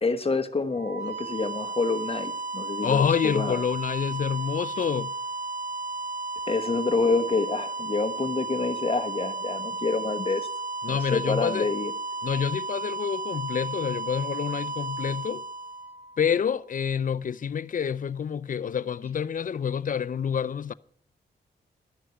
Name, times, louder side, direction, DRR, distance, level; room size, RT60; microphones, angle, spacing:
voice 1, 0.0-3.6 6.5-10.5 10.9-11.9, left 3 dB, 35° left, 1.2 m, -27 dB
sound 1, 0.7-16.5, right 3 dB, 45° right, 3.1 m, -34 dB
voice 2, 2.8-5.1 10.8-11.7 12.2-15.4 16.2-20.7, left 7 dB, 50° left, 0.5 m, -27 dB
12.5 x 6.4 x 9.1 m
cardioid pair, 55°, 18 cm